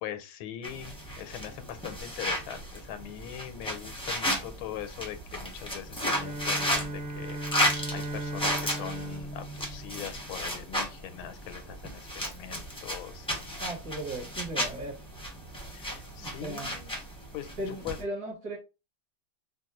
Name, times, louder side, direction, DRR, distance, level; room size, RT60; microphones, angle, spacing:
voice 1, 0.0-12.0 12.3-13.6 15.7-16.9 17.3-18.0, left 10 dB, 90° left, 1.4 m, -41 dB
sound 1, 0.6-18.0, equal, 5° left, 0.4 m, -34 dB
Bowed string instrument, 5.9-10.6, right 2 dB, 85° right, 1.6 m, -38 dB
voice 2, 13.6-15.0 16.2-16.8 17.6-18.6, right 1 dB, 50° right, 1.8 m, -37 dB
4.2 x 2.3 x 2.9 m
omnidirectional pair, 2.2 m